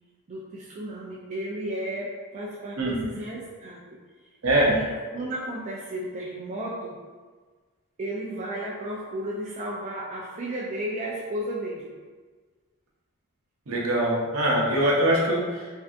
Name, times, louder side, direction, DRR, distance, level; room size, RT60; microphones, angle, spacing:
voice 1, 0.3-3.8 4.7-7.0 8.0-11.9, right 1 dB, 35° right, -5 dB, 0.3 m, -33 dB
voice 2, 4.4-4.7 13.7-15.8, right 1 dB, 75° right, -3 dB, 0.6 m, -23 dB
3.3 x 2.6 x 2.5 m, 1.4 s
head